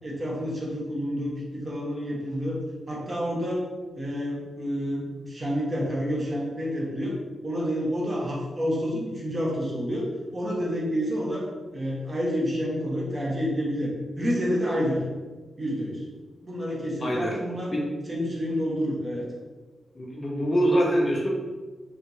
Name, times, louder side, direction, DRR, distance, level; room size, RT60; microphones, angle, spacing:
voice 1, 0.0-2.6 2.9-3.6 4.0-7.2 7.4-15.0 15.6-16.0 16.4-17.7 18.1-19.2, equal, 35° right, -4 dB, 1.1 m, -29 dB
voice 2, 17.0-17.3 17.7-17.8 19.9-21.3, equal, 45° left, -2 dB, 0.8 m, -24 dB
2.8 x 2.7 x 2.7 m, 1.3 s
supercardioid pair, 40°, 0 cm